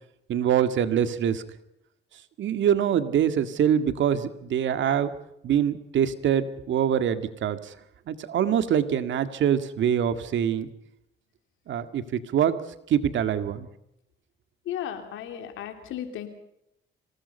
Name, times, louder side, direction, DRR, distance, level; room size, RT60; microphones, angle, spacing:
voice 1, 0.3-1.4 2.4-5.1 5.4-7.7 8.1-10.7 11.7-12.6 12.9-13.7, right 9 dB, 70° right, 10 dB, 1.9 m, -24 dB
voice 2, 14.7-16.3, left 10 dB, 85° left, 7 dB, 3.4 m, -34 dB
26.0 x 19.0 x 5.5 m, 0.80 s
cardioid pair, 90°, 20 cm